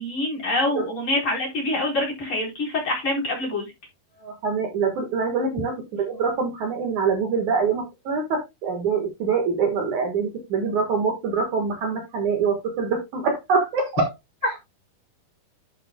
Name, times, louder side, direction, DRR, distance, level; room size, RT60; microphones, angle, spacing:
voice 1, 0.0-3.6, left 2 dB, 30° left, -2 dB, 5.0 m, -25 dB
voice 2, 4.2-5.7 6.0-14.1 14.4-14.6, right 5 dB, 55° right, 3 dB, 2.7 m, -24 dB
10.5 x 8.2 x 2.3 m, 0.21 s
omnidirectional pair, 4.5 m